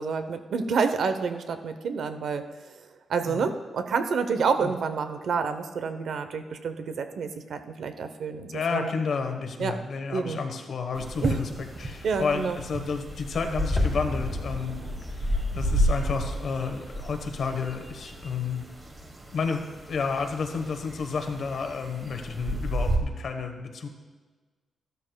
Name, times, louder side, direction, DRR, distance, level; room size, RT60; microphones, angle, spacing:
voice 1, 0.0-2.4 3.1-8.9 9.6-9.7 10.1-10.4 11.2-11.3 12.0-12.6, right 5 dB, 70° right, 9 dB, 0.7 m, -28 dB
voice 2, 8.5-14.8 15.2-18.6 19.3-23.9, left 5 dB, 55° left, 6 dB, 1.1 m, -31 dB
sound 1, 11.0-23.0, equal, 20° right, 1.2 m, -32 dB
sound 2, 13.8-18.7 19.0-19.1, left 2 dB, 10° left, 1.7 m, -36 dB
13.5 x 12.5 x 2.3 m, 1.4 s
wide cardioid pair, 150°, 0 cm